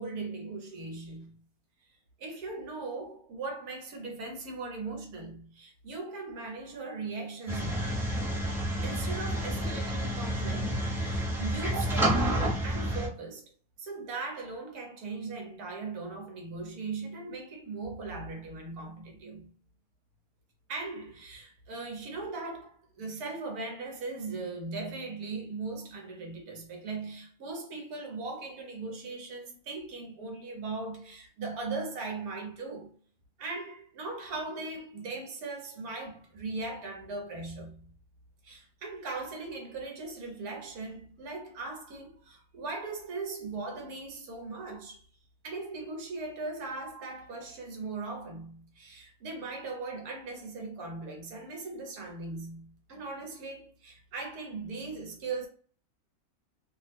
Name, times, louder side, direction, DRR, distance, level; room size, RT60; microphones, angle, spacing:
voice 1, 0.0-1.4 2.2-8.0 8.8-13.4 13.8-19.5 20.7-32.9 33.4-37.9 38.4-45.1 45.4-55.5, right 3 dB, 75° right, 1.3 m, -39 dB
sound 1, 7.5-13.1, right 1 dB, 5° right, 0.3 m, -29 dB
3.0 x 2.0 x 3.3 m
omnidirectional pair, 1.6 m